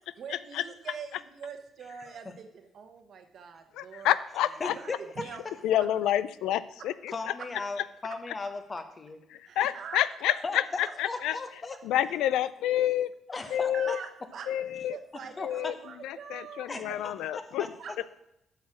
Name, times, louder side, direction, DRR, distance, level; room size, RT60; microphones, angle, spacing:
voice 1, 0.2-4.1 4.7-5.9 9.4-10.3 11.1-11.2 13.4-14.5 14.9-16.8 17.8-18.1, right 6 dB, 65° right, 6 dB, 1.2 m, -44 dB
voice 2, 3.7-4.7 5.6-7.1 9.3-11.4 11.8-13.1 13.5-14.0 14.5-15.0 15.4-15.7 16.0-17.7, left 12 dB, 90° left, 16 dB, 0.3 m, -28 dB
voice 3, 4.6-5.0 7.1-9.2 10.4-11.8 13.3-13.9 15.4-15.7 16.7-17.7, left 3 dB, 30° left, 8 dB, 1.1 m, -37 dB
8.0 x 6.4 x 6.0 m, 0.83 s
cardioid pair, 90°, 0 cm